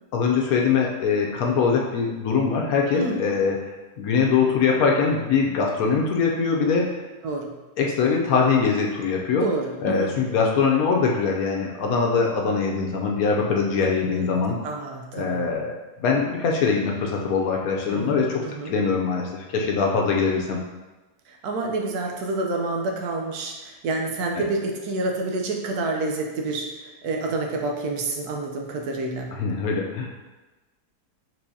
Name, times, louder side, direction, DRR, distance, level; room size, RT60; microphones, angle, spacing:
voice 1, 0.1-7.0 7.8-9.5 9.8-14.6 15.1-20.6 24.4-24.5 29.4-30.3, left 5 dB, 70° left, 0 dB, 1.0 m, -23 dB
voice 2, 9.4-10.2 14.1-14.4 14.6-15.4 17.9-18.7 21.3-29.3, right 2 dB, 75° right, 1 dB, 1.2 m, -28 dB
4.6 x 3.8 x 2.7 m, 1.1 s
omnidirectional pair, 1.7 m